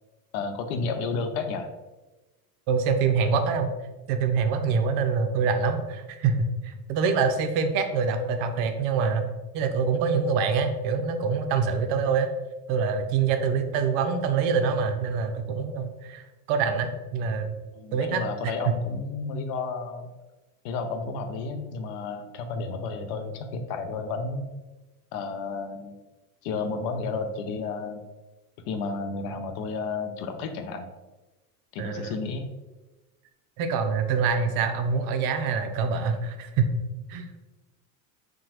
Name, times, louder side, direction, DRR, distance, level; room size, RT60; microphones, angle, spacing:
voice 1, 0.3-1.7 17.7-20.1 20.6-24.4 25.1-26.0 26.4-28.0 28.7-30.9 31.7-32.5, left 4 dB, 60° left, 7 dB, 0.5 m, -32 dB
voice 2, 2.7-3.7 4.1-12.3 12.7-17.5 17.9-18.7 31.8-32.2 33.6-36.7 37.1-37.3, right 5 dB, 60° right, 7 dB, 0.5 m, -25 dB
2.8 x 2.2 x 2.8 m, 1.1 s
hypercardioid pair, 85°, 44 cm